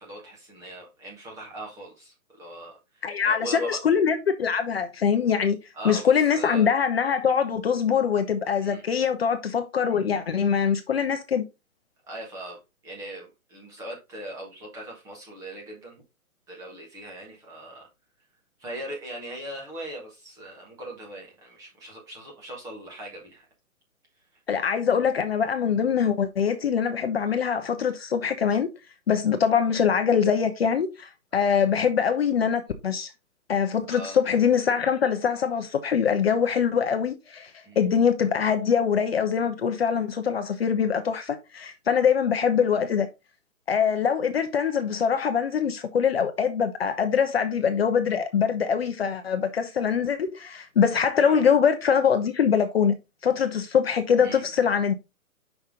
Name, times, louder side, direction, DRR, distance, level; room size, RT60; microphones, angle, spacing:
voice 1, 0.0-3.8 5.7-6.7 8.6-8.8 12.1-15.9 16.5-17.9 18.6-23.4 31.3-31.5 33.9-34.2 37.6-37.9 51.3-51.4 54.2-54.4, right 1 dB, 5° right, 1.2 m, -40 dB
voice 2, 3.0-5.6 5.8-11.4 24.5-28.7 29.1-33.1 33.5-43.1 43.7-53.0 53.2-54.9, left 7 dB, 45° left, 0.7 m, -23 dB
5.6 x 5.6 x 3.7 m
hypercardioid pair, 160°, 43 cm